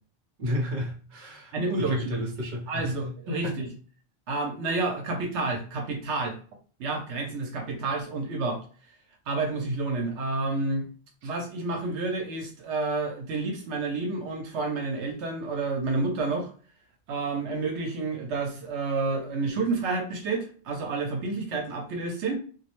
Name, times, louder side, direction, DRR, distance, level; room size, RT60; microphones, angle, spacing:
voice 1, 0.4-3.5 11.2-11.3, left 1 dB, 45° right, -1 dB, 0.8 m, -33 dB
voice 2, 1.5-2.2 2.7-3.7 4.3-6.4 6.8-8.6 9.3-10.9 11.2-16.5 17.1-22.4, right 3 dB, 80° right, 3 dB, 0.9 m, -29 dB
2.3 x 2.0 x 2.9 m, 0.41 s
omnidirectional pair, 1.1 m